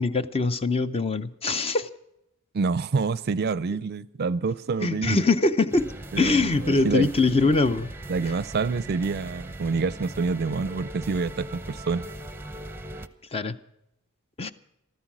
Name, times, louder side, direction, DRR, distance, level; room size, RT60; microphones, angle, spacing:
voice 1, 0.0-1.9 4.8-5.9 6.2-7.9 13.3-13.6 14.4-14.5, left 3 dB, 25° left, 12 dB, 0.6 m, -23 dB
voice 2, 2.5-5.2 6.1-7.1 8.1-12.0, right 4 dB, 50° right, 18 dB, 0.5 m, -27 dB
sound 1, 5.7-13.1, right 1 dB, 10° right, 0.7 m, -39 dB
14.0 x 13.5 x 6.0 m, 0.83 s
head